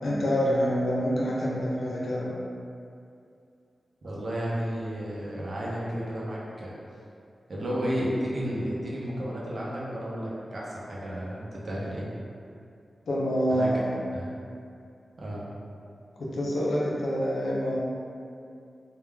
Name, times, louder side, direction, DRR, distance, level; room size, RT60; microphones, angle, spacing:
voice 1, 0.0-2.4 13.1-13.9 16.2-17.8, equal, 85° left, -6 dB, 0.6 m, -26 dB
voice 2, 4.0-6.7 7.5-12.1 13.5-13.8 14.1-14.3 15.2-15.4, equal, 65° right, -6 dB, 0.6 m, -32 dB
3.5 x 2.2 x 2.2 m, 2.5 s
wide cardioid pair, 80°, 0 cm